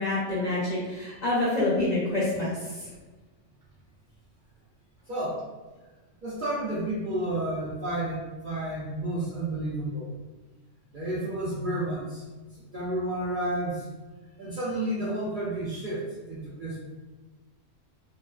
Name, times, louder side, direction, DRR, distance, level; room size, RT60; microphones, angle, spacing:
voice 1, 0.0-2.5, left 2 dB, 50° left, -8 dB, 0.6 m, -26 dB
voice 2, 5.1-5.4 6.2-10.1 10.9-12.2 12.6-13.9 14.4-16.8, right 1 dB, 55° right, -8 dB, 0.5 m, -31 dB
2.4 x 2.2 x 2.3 m, 1.2 s
omnidirectional pair, 1.3 m